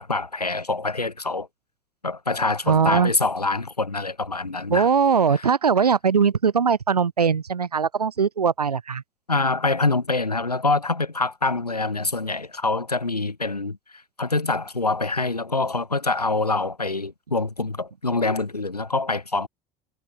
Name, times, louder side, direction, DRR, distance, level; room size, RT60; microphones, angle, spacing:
voice 1, 0.0-1.5 2.0-4.9 5.3-5.5 9.3-13.8 14.2-19.5, left 3 dB, 85° left, 6.7 m, -25 dB
voice 2, 2.7-3.1 4.7-9.0, right 6 dB, 80° right, 2.4 m, -20 dB
figure-of-eight pair, 60°, 19 cm